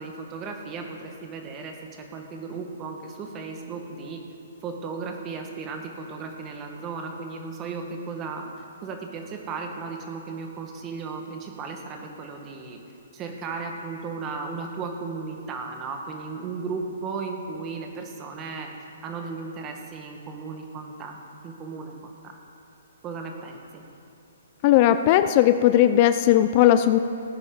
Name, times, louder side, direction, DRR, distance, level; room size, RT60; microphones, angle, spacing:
voice 1, 0.0-4.2 4.6-12.8 13.1-18.7 19.0-21.2 21.4-22.3 23.0-23.8, right 4 dB, 25° right, 3 dB, 1.6 m, -35 dB
voice 2, 24.6-27.0, left 12 dB, 40° left, 11 dB, 0.4 m, -18 dB
17.5 x 9.8 x 4.0 m, 2.6 s
hypercardioid pair, 135°, 0 cm